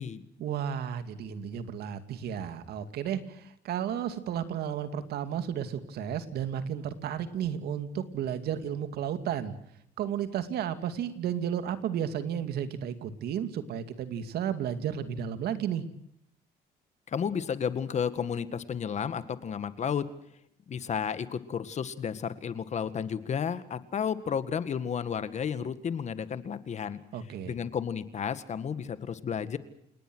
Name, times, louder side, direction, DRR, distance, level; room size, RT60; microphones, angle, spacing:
voice 1, 0.4-9.5 10.0-15.8 27.1-27.5, right 9 dB, 70° right, 10 dB, 2.5 m, -33 dB
voice 2, 17.1-20.1 20.7-27.0 27.5-29.6, left 7 dB, 45° left, 12 dB, 1.8 m, -32 dB
29.0 x 19.0 x 6.3 m, 0.74 s
cardioid pair, 110°, 17 cm